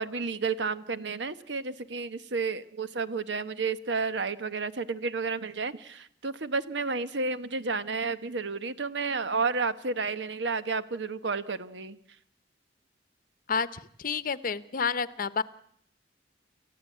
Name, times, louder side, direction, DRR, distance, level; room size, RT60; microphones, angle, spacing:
voice 1, 0.0-12.0, right 4 dB, 75° right, 13 dB, 1.1 m, -31 dB
voice 2, 13.5-15.4, left 5 dB, 50° left, 16 dB, 0.8 m, -30 dB
28.5 x 14.5 x 8.4 m, 0.69 s
head